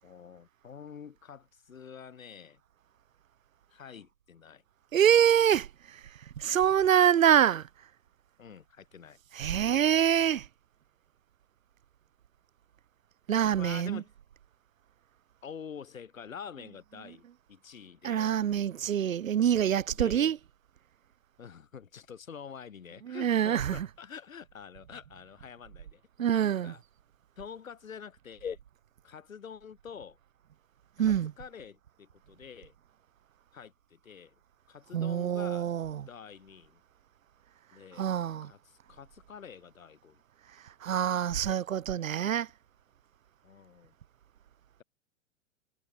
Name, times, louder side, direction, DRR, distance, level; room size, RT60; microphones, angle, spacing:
voice 1, 0.0-2.6 3.7-4.6 7.0-7.2 8.4-9.2 13.6-14.1 15.4-18.4 19.9-20.4 21.4-26.8 27.4-28.6 29.0-30.2 31.0-32.7 33.5-34.4 34.7-35.7 36.1-36.8 37.7-38.1 38.4-40.2 43.4-43.9, left 7 dB, 80° left, 7.7 m, -47 dB
voice 2, 4.9-5.7 6.4-7.6 9.4-10.4 13.3-14.0 18.0-20.4 23.1-23.8 26.2-26.7 31.0-31.3 34.9-36.0 38.0-38.5 40.8-42.5, right 9 dB, 80° right, 1.1 m, -25 dB
hypercardioid pair, 105°, 39 cm